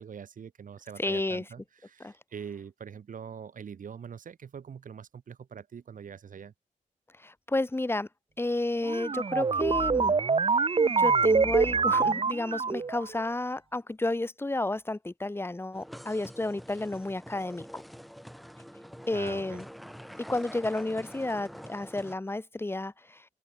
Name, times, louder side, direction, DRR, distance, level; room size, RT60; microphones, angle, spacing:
voice 1, 0.0-6.5 19.1-19.6, right 7 dB, 65° right, 4.8 m, -43 dB
voice 2, 1.0-1.4 2.0-2.1 7.2-8.1 8.4-10.1 10.8-17.8 19.1-19.7 20.3-23.2, left 2 dB, 15° left, 2.7 m, -31 dB
sound 1, 8.8-13.0, right 5 dB, 40° right, 2.5 m, -25 dB
sound 2, 15.7-22.1, equal, ahead, 6.7 m, -46 dB
open air
wide cardioid pair, 115°, 15 cm